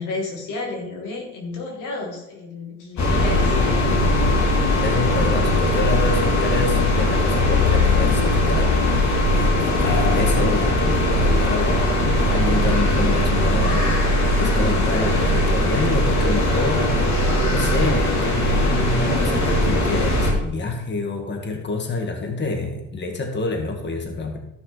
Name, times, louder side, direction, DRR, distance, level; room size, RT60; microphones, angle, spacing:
voice 1, 0.0-4.1, left 3 dB, 90° left, 0 dB, 2.5 m, -31 dB
sound 1, 3.0-20.3, left 1 dB, 65° left, 2.7 m, -19 dB
voice 2, 4.8-14.1 14.4-24.4, left 3 dB, 35° left, 3 dB, 1.8 m, -27 dB
14.0 x 6.0 x 4.0 m, 0.83 s
cardioid pair, 90°, 30 cm